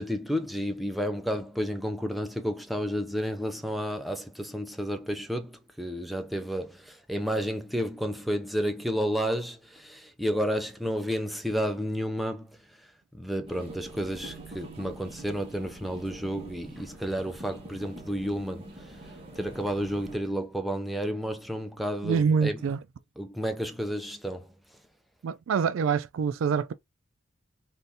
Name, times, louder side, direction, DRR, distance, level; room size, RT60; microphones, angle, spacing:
voice 1, 0.0-12.9 13.1-19.1 19.4-22.6 23.2-24.5, equal, ahead, 0.4 m, -31 dB
sound 1, 13.5-20.2, right 2 dB, 30° right, 1.0 m, -45 dB
voice 2, 22.0-22.8 25.2-26.7, right 6 dB, 80° right, 0.3 m, -25 dB
3.4 x 2.5 x 2.7 m
head